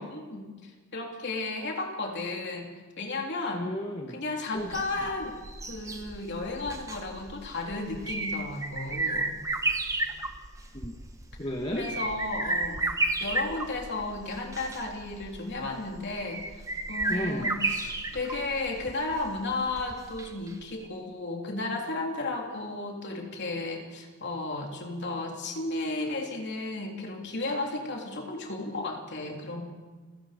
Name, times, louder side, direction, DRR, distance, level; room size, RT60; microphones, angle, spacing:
voice 1, 0.0-2.7 3.0-3.7 4.1-9.3 11.7-12.9 13.2-29.6, left 2 dB, 50° left, 1 dB, 3.4 m, -34 dB
voice 2, 3.5-4.2 4.5-4.7 10.7-11.0 11.4-11.9 17.1-17.5, equal, 25° left, 1 dB, 1.6 m, -33 dB
sound 1, 4.6-20.5 20.8-20.9, right 2 dB, 15° right, 1.1 m, -33 dB
29.5 x 17.0 x 5.2 m, 1.4 s
head